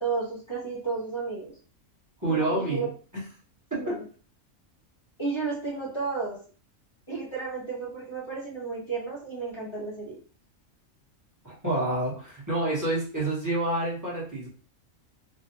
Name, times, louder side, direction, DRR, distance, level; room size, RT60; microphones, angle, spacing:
voice 1, 0.0-1.5 2.2-2.9 3.8-4.0 5.2-6.4 7.1-10.2, right 4 dB, 25° left, -5 dB, 1.0 m, -32 dB
voice 2, 2.2-2.9 3.8-4.0 11.4-14.5, right 2 dB, 15° right, -7 dB, 1.2 m, -28 dB
3.1 x 2.4 x 2.9 m, 0.39 s
omnidirectional pair, 1.4 m